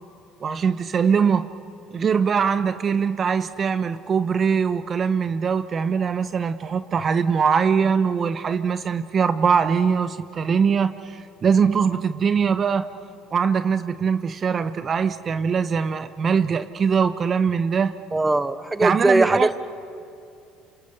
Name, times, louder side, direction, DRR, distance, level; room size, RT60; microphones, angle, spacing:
voice 1, 0.4-1.5 1.9-12.9 13.3-17.9 18.8-19.6, right 6 dB, 40° right, 12 dB, 0.9 m, -22 dB
voice 2, 18.1-19.6, right 2 dB, 15° right, 14 dB, 1.2 m, -20 dB
27.5 x 27.0 x 6.8 m, 2.7 s
hypercardioid pair, 65°, 0 cm